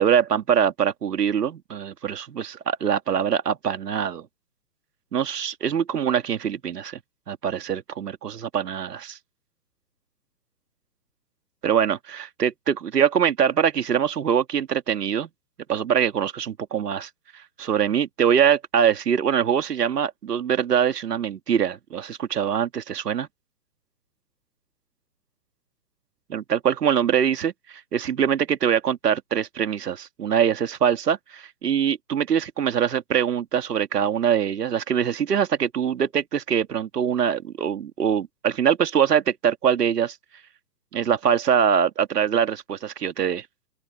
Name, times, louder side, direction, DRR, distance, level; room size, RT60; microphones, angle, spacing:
voice 1, 0.0-4.3 5.1-7.0 7.3-9.2 11.6-15.3 15.7-17.1 17.6-23.3 26.3-40.2 40.9-43.5, right 8 dB, 65° right, 2.4 m, -23 dB
open air
hypercardioid pair, 140°, 50 cm